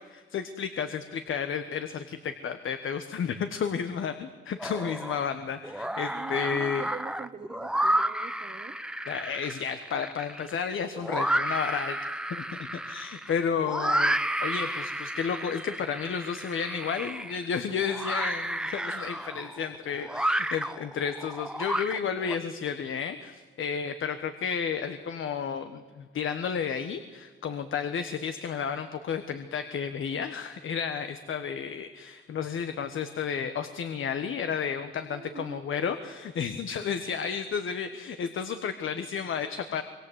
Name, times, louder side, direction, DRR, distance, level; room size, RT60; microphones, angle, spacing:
voice 1, 0.3-6.8 9.1-12.4 12.7-39.8, left 7 dB, 70° left, 9 dB, 1.4 m, -32 dB
sound 1, 4.6-5.3 5.6-22.4, right 1 dB, 5° right, 0.9 m, -31 dB
voice 2, 6.1-8.7 35.0-35.6, right 5 dB, 35° right, 5 dB, 1.4 m, -43 dB
25.5 x 22.5 x 8.2 m, 1.4 s
cardioid pair, 95°, 21 cm